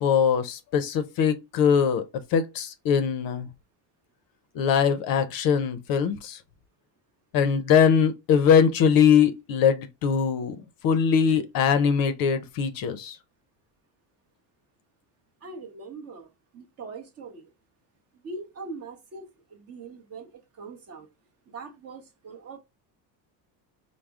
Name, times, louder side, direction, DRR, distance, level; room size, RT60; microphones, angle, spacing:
voice 1, 0.0-2.1 2.3-3.5 4.5-6.4 7.3-10.6 10.8-13.2, left 7 dB, 50° left, 0.5 m, -22 dB
voice 2, 15.4-17.5 18.2-21.1 21.5-22.6, right 3 dB, 35° right, 0.7 m, -42 dB
4.8 x 2.0 x 3.4 m
cardioid pair, 165°, 46 cm